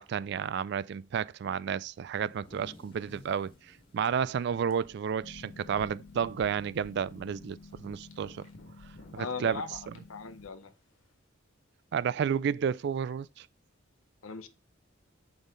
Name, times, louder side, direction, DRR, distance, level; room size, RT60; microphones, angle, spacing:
voice 1, 0.0-8.5 9.1-9.9 11.9-13.5, right 7 dB, 55° right, 0.3 m, -32 dB
sound 1, 2.1-5.8 6.1-6.3 6.7-7.1 8.2-8.3 9.4-9.5, left 2 dB, 25° left, 1.2 m, -56 dB
sound 2, 2.9-11.1, left 1 dB, 70° left, 1.7 m, -58 dB
Harp, 5.2-10.5, left 3 dB, 55° left, 0.6 m, -51 dB
voice 2, 9.1-10.7 14.2-14.5, left 4 dB, 90° left, 0.8 m, -39 dB
6.3 x 5.3 x 3.8 m
head